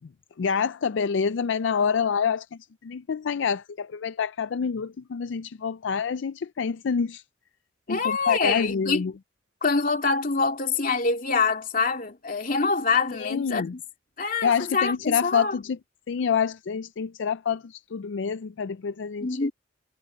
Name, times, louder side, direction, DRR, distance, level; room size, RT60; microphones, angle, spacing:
voice 1, 0.4-2.5 2.8-7.2 7.9-9.1 13.1-13.7 14.4-15.8 16.1-19.5, left 6 dB, 65° left, 0.4 m, -27 dB
voice 2, 7.9-9.0 9.6-13.8 14.2-15.5 19.2-19.5, left 4 dB, 45° left, 2.6 m, -25 dB
head